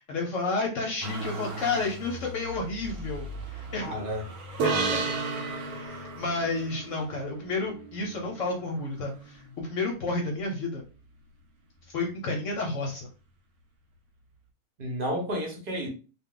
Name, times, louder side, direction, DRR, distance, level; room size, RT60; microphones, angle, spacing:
voice 1, 0.0-3.9 4.6-4.7 5.6-10.8 11.9-13.1, left 3 dB, 65° left, 0.9 m, -31 dB
Motor vehicle (road), 1.0-10.1 10.7-11.5 11.8-12.9 13.9-14.0, right 1 dB, 70° right, 0.9 m, -42 dB
voice 2, 3.8-4.3 4.7-5.0 14.8-15.9, equal, 45° right, 0.9 m, -32 dB
sound 1, 4.6-8.1, right 4 dB, 90° right, 1.2 m, -32 dB
2.4 x 2.2 x 3.7 m
omnidirectional pair, 1.6 m